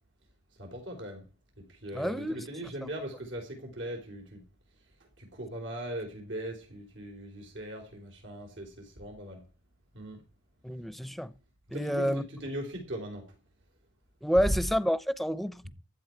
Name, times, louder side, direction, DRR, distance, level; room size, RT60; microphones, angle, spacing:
voice 1, 0.6-1.2 1.8-4.4 5.2-9.4 9.9-10.2 11.7-13.2, right 1 dB, 90° right, 4.1 m, -40 dB
voice 2, 1.9-2.5 10.6-11.3 11.7-12.2 14.2-15.7, equal, ahead, 0.6 m, -29 dB
15.5 x 11.5 x 4.6 m
head